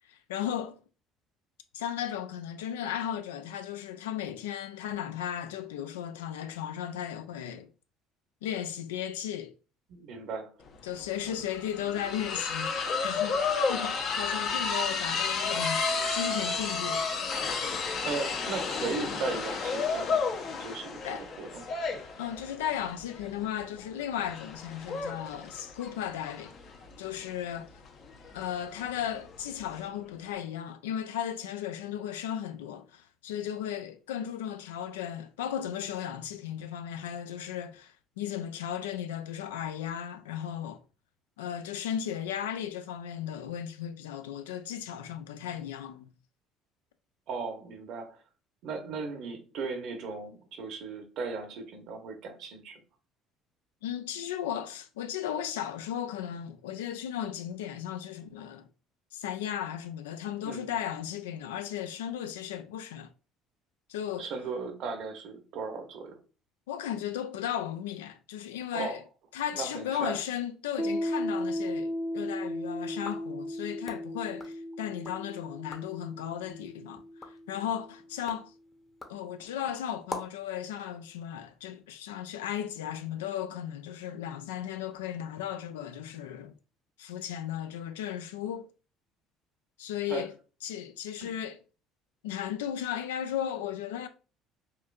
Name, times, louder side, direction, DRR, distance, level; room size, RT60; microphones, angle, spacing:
voice 1, 0.1-0.8 1.7-7.7 8.4-9.5 10.8-12.7 13.0-15.8 16.1-17.1 21.0-21.3 22.2-26.5 27.0-27.7 28.3-40.8 41.4-46.1 53.8-58.7 59.1-63.1 63.9-64.3 66.7-69.0 69.3-77.0 77.5-78.5 79.1-86.5 87.0-88.7 89.8-90.3 90.6-91.6 92.2-94.1, left 10 dB, 85° left, 0.3 m, -35 dB
voice 2, 9.9-10.6 11.3-11.4 18.0-20.2 20.6-21.6 47.3-48.2 48.6-52.8 60.4-60.8 64.2-66.2 68.7-69.0 69.5-70.2 90.1-90.3 91.2-91.3, right 4 dB, 65° right, 0.9 m, -37 dB
sound 1, 10.7-10.8 11.0-29.9, left 4 dB, 60° left, 0.8 m, -32 dB
Piano, 70.8-78.0, equal, 5° right, 0.5 m, -36 dB
sound 2, 72.9-75.2 75.6-76.0 76.5-80.5, left 2 dB, 25° left, 0.8 m, -46 dB
4.2 x 2.6 x 2.4 m
hypercardioid pair, 60°, 0 cm